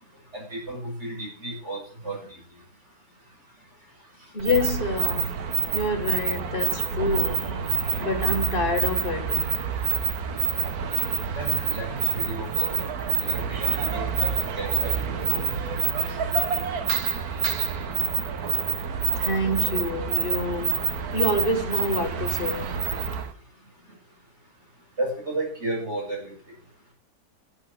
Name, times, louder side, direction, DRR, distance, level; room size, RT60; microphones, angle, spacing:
voice 1, 0.3-2.4 4.2-4.3 11.3-12.9 13.2-15.5 16.0-16.2 18.0-18.3 25.0-26.3, right 1 dB, 40° right, 8.2 m, -33 dB
voice 2, 4.3-5.3 5.7-7.6 8.0-9.6 19.2-20.8 21.1-22.8, left 1 dB, 35° left, 2.0 m, -27 dB
sound 1, 4.4-23.3, right 7 dB, 65° right, 1.7 m, -27 dB
12.0 x 8.3 x 7.3 m
omnidirectional pair, 1.7 m